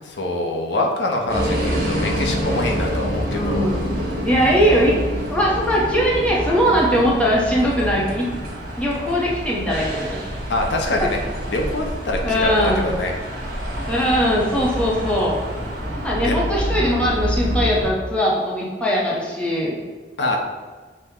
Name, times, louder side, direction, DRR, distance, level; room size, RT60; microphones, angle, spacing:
voice 1, 0.0-3.7 10.5-11.2 11.5-13.1 16.2-16.4 20.2-20.4, left 2 dB, 75° left, 2 dB, 0.6 m, -24 dB
sound 1, 1.3-17.9, equal, 55° right, 1.2 m, -27 dB
voice 2, 3.3-3.8 4.3-5.0 5.3-8.3 8.8-10.2 12.2-12.9 13.9-15.4 16.0-19.8, equal, 5° left, -5 dB, 0.8 m, -20 dB
6.1 x 2.1 x 3.6 m, 1.4 s
head